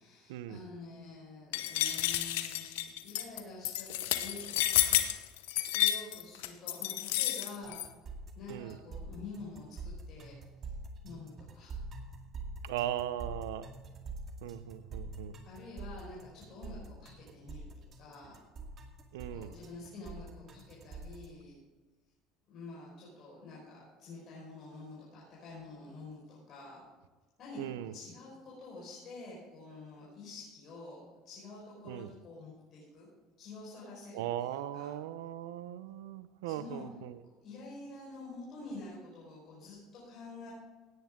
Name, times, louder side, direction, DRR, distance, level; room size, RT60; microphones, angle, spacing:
voice 1, 0.0-5.0 5.7-7.8 8.3-10.7 11.0-11.8 15.4-17.7 18.0-18.4 19.3-21.6 22.5-26.8 27.4-33.1 33.4-34.9 36.4-36.8 37.2-40.5, left 2 dB, 55° left, -6 dB, 4.8 m, -48 dB
sound 1, 1.5-7.9, left 14 dB, 90° left, 0.8 m, -30 dB
sound 2, 7.6-21.3, right 3 dB, 45° right, 2.1 m, -45 dB
voice 2, 12.6-13.7 14.4-15.3 19.1-19.5 27.6-27.9 31.8-32.1 34.1-37.2, right 12 dB, 90° right, 15 dB, 0.6 m, -38 dB
17.0 x 9.4 x 3.7 m, 1.3 s
supercardioid pair, 95°, 0 cm